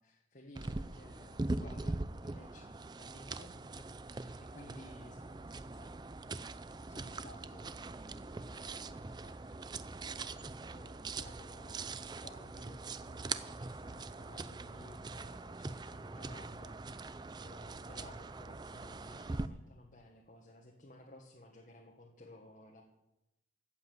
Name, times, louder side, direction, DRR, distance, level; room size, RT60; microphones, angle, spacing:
voice 1, 0.0-2.7 3.0-5.9 6.9-9.5 9.9-16.8 17.4-22.8, left 1 dB, 45° left, 0 dB, 1.5 m, -57 dB
sound 1, 0.5-19.5, right 3 dB, 25° right, 0.4 m, -42 dB
14.5 x 8.4 x 8.0 m, 0.93 s
head